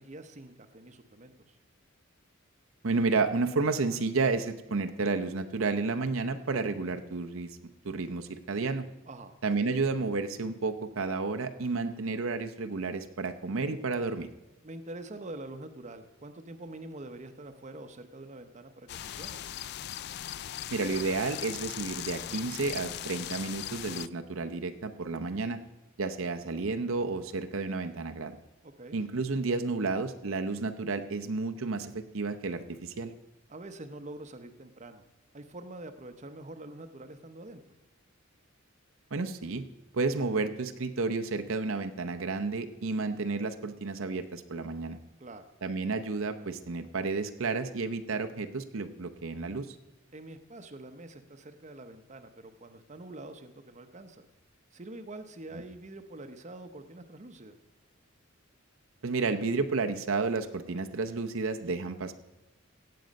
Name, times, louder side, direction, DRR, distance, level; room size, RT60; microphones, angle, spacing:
voice 1, 0.0-1.6 9.1-9.3 14.6-19.4 28.6-29.0 33.5-35.0 35.3-37.6 45.2-45.5 50.1-54.3 54.7-57.6, right 2 dB, 35° right, 8 dB, 0.8 m, -45 dB
voice 2, 2.8-7.5 7.8-8.9 9.4-14.3 20.7-25.6 26.0-28.3 28.9-33.1 39.1-39.6 39.9-45.0 45.6-49.8 59.0-62.1, right 3 dB, 75° right, 7 dB, 0.8 m, -31 dB
sound 1, 18.9-24.1, left 12 dB, 50° left, 0.3 m, -39 dB
17.0 x 7.7 x 5.2 m, 1.1 s
head